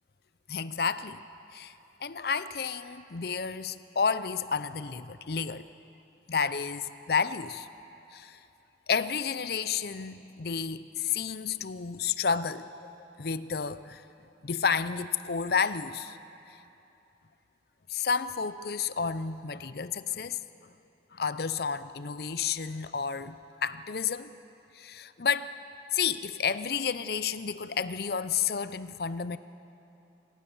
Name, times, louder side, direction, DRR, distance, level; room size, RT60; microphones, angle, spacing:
voice 1, 0.5-1.2 1.5-1.7 2.0-5.7 6.3-7.7 8.1-8.4 8.9-12.7 13.2-14.0 14.4-16.2 16.5-16.6 17.9-20.4 21.1-23.4 23.6-24.3 24.7-25.5 25.9-29.4, left 6 dB, 55° left, 14 dB, 0.6 m, -31 dB
27.0 x 15.5 x 7.1 m, 2.9 s
head